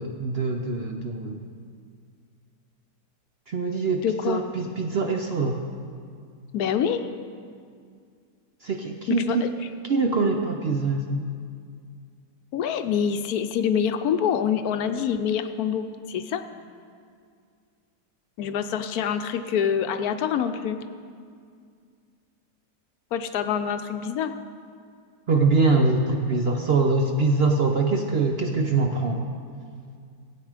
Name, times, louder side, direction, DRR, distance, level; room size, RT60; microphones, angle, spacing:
voice 1, 0.0-1.4 3.5-5.6 8.6-9.3 9.9-11.2 25.3-29.3, right 3 dB, 55° right, 3 dB, 0.7 m, -23 dB
voice 2, 4.0-4.4 6.5-7.1 9.1-9.5 12.5-16.4 18.4-20.8 23.1-24.3, left 8 dB, 70° left, 9 dB, 1.1 m, -26 dB
17.0 x 8.7 x 5.0 m, 2.2 s
omnidirectional pair, 1.7 m